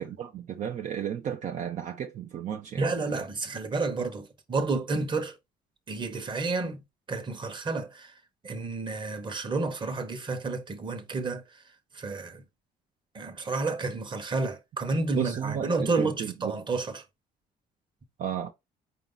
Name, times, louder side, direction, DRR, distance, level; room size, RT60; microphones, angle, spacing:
voice 1, 0.0-3.2 15.1-16.6 18.2-18.5, right 9 dB, 50° right, 0.6 m, -34 dB
voice 2, 2.8-5.3 5.9-6.8 7.1-8.1 8.4-11.4 11.9-12.4 13.1-17.0, right 3 dB, 30° right, 1.1 m, -30 dB
4.9 x 2.7 x 3.9 m
cardioid pair, 110°, 17 cm